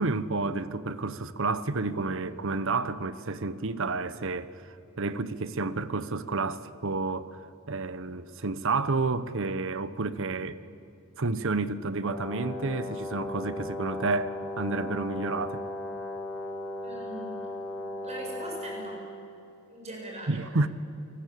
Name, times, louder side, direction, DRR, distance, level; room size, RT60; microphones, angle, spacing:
voice 1, 0.0-7.4 7.7-10.6 11.2-15.6 20.3-20.7, right 3 dB, 65° right, 1.0 m, -30 dB
Brass instrument, 12.0-19.0, left 1 dB, 5° left, 7.2 m, -36 dB
voice 2, 16.8-17.4 18.0-19.0 19.7-20.4, right 1 dB, 30° right, 7.5 m, -41 dB
28.0 x 20.0 x 8.5 m
head